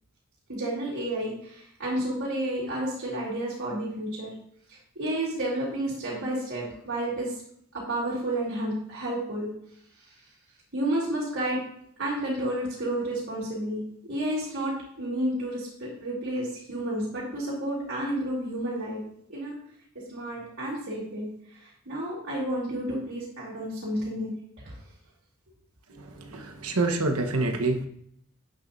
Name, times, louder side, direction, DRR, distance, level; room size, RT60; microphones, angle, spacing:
voice 1, 0.5-4.3 4.7-7.3 7.7-9.5 10.0-10.1 10.7-11.6 12.0-19.0 19.3-19.5 20.1-24.3 24.6-24.8, right 1 dB, 60° right, -7 dB, 3.4 m, -31 dB
voice 2, 26.2-27.9, right 2 dB, 85° right, 4 dB, 1.2 m, -26 dB
10.5 x 9.3 x 2.7 m, 0.69 s
head